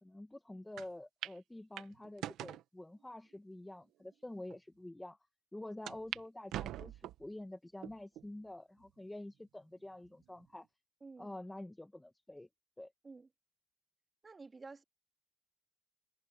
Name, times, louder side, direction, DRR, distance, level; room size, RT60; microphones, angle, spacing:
voice 1, 0.0-5.2 5.5-10.7 11.2-12.5 12.8-12.9, left 1 dB, 10° left, 1.6 m, -48 dB
sound 1, 0.8-0.9 1.2-1.4 1.8-2.6 3.3-3.4 4.1-4.2 4.5-4.6 5.9-6.2 6.5-7.3 7.8-8.3 8.8-8.9 10.0-10.5, right 13 dB, 85° right, 0.9 m, -43 dB
voice 2, 14.2-14.8, right 3 dB, 30° right, 2.3 m, -51 dB
cardioid pair, 90°, 0 cm